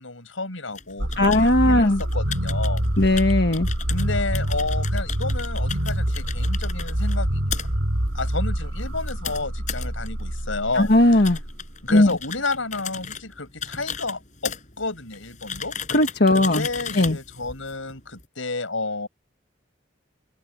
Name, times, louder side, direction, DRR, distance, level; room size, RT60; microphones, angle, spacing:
voice 1, 0.0-2.8 3.9-11.4 11.8-15.7 16.3-19.1, left 3 dB, 90° left, 7.0 m, -31 dB
sound 1, 0.7-18.3, left 7 dB, 40° left, 5.7 m, -37 dB
sound 2, 1.0-11.9, equal, 75° right, 2.8 m, -26 dB
voice 2, 1.2-2.0 3.0-3.7 10.8-11.4 11.9-12.1 15.9-16.7 17.0-17.2, left 1 dB, 55° left, 1.6 m, -17 dB
head